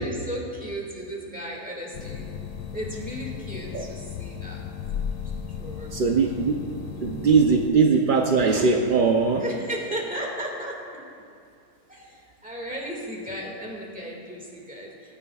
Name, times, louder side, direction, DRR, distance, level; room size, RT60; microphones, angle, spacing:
voice 1, 0.0-2.5 2.7-4.7 5.2-5.3 5.6-5.9 6.2-6.4 9.4-11.0 11.9-15.2, equal, 5° right, -3 dB, 1.9 m, -35 dB
sound 1, 1.9-7.7, left 8 dB, 75° left, 1.1 m, -35 dB
voice 2, 5.9-6.7 7.0-9.4, right 4 dB, 75° right, 3 dB, 0.4 m, -20 dB
17.5 x 10.0 x 2.3 m, 2.5 s
omnidirectional pair, 1.6 m